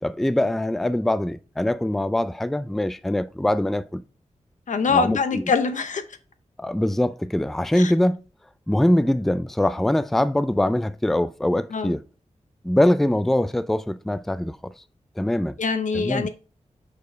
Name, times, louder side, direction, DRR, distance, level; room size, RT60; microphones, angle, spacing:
voice 1, 0.0-4.0 4.9-5.4 6.6-8.2 8.7-12.0 12.6-14.7 15.2-15.6 15.9-16.3, left 1 dB, ahead, 0.3 m, -23 dB
voice 2, 4.7-6.0 7.8-7.9 11.7-11.9 15.6-16.3, left 5 dB, 85° left, 0.8 m, -23 dB
5.2 x 4.3 x 5.1 m
wide cardioid pair, 75°, 12 cm